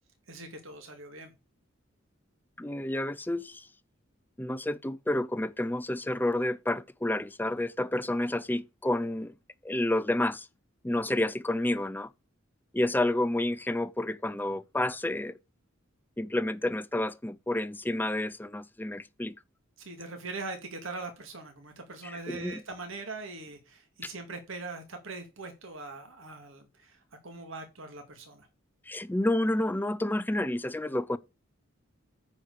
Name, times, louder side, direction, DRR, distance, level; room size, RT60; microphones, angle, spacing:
voice 1, 0.3-1.3 19.8-28.5, right 3 dB, 75° right, 2.2 m, -42 dB
voice 2, 2.6-3.7 4.4-9.3 9.6-10.5 10.8-12.1 12.7-15.4 16.2-19.3 22.0-22.6 24.0-24.1 28.9-31.2, left 1 dB, 10° left, 0.5 m, -30 dB
9.6 x 4.5 x 6.6 m
head